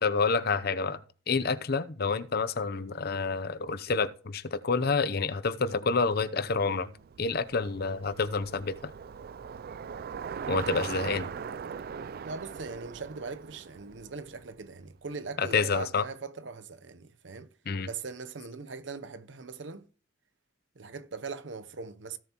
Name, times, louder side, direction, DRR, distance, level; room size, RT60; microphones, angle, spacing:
voice 1, 0.0-1.0 1.3-6.9 7.2-8.9 10.5-11.3 15.4-16.0 17.7-17.9, left 4 dB, 55° left, 0.7 m, -28 dB
Bicycle, 6.5-14.8, right 6 dB, 50° right, 0.4 m, -40 dB
voice 2, 12.2-17.5 17.9-19.9 20.8-22.2, right 4 dB, 70° right, 0.8 m, -40 dB
17.0 x 7.1 x 3.0 m
head